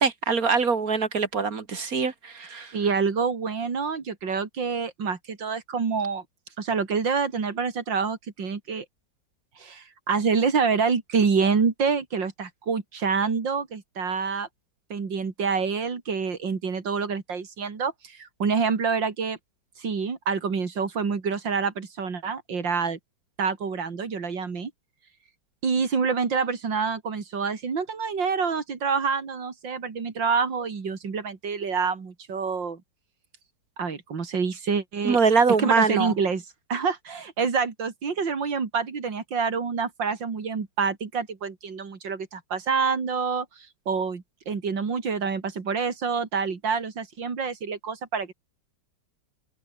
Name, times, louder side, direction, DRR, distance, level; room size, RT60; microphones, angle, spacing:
voice 1, 0.0-2.7 35.0-36.1, right 5 dB, 50° right, 2.4 m, -23 dB
voice 2, 2.7-6.2 6.6-8.8 9.6-14.5 14.9-19.4 19.8-23.0 23.4-24.7 25.6-32.8 33.8-35.2 35.6-36.4 36.7-48.3, right 5 dB, 80° right, 3.5 m, -27 dB
omnidirectional pair, 2.0 m